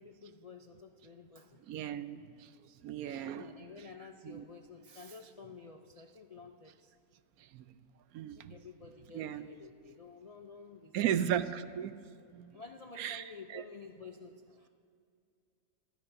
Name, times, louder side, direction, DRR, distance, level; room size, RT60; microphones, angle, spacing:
voice 1, 0.0-1.6 3.3-6.9 8.3-11.3 12.5-14.7, left 4 dB, 65° left, 5 dB, 0.3 m, -51 dB
voice 2, 1.7-2.5 2.8-3.5 4.2-4.4 7.5-7.6 8.1-8.5 9.1-9.5 10.9-11.9 12.3-12.5 13.0-13.2 13.5-13.6, right 10 dB, 80° right, 13 dB, 1.1 m, -35 dB
24.0 x 15.5 x 2.7 m, 2.4 s
omnidirectional pair, 1.5 m